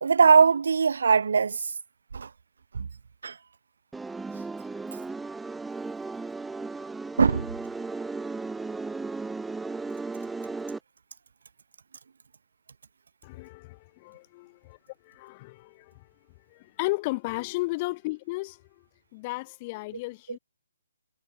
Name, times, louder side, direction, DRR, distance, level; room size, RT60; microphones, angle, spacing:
voice 1, 0.0-1.6 2.1-2.3 2.7-2.9 3.2-3.3 7.2-7.5, right 5 dB, 70° right, 1.6 m, -20 dB
sound 1, 3.9-10.8, right 3 dB, 5° right, 3.7 m, -35 dB
voice 2, 13.2-14.8 15.0-16.1 16.5-18.6 19.1-20.4, left 22 dB, 30° left, 3.1 m, -34 dB
hypercardioid pair, 150°, 0 cm